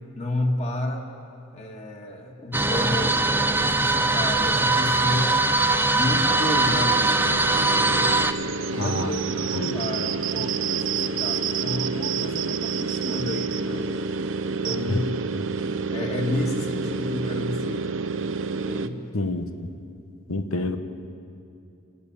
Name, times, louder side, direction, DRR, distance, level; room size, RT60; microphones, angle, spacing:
voice 1, 0.2-1.1 1.5-5.6 5.9-8.2 8.7-13.9 14.6-15.2 15.9-17.9 18.5-19.0, left 1 dB, 30° left, 1 dB, 2.2 m, -31 dB
sound 1, 2.5-8.3, right 2 dB, 10° right, 0.5 m, -21 dB
sound 2, 5.7-18.9, right 5 dB, 65° right, 0.7 m, -29 dB
voice 2, 8.8-9.1 9.5-9.8 14.9-15.0 19.1-19.7 20.3-20.8, left 2 dB, 90° left, 7 dB, 1.4 m, -28 dB
29.5 x 12.0 x 9.1 m, 2.5 s
head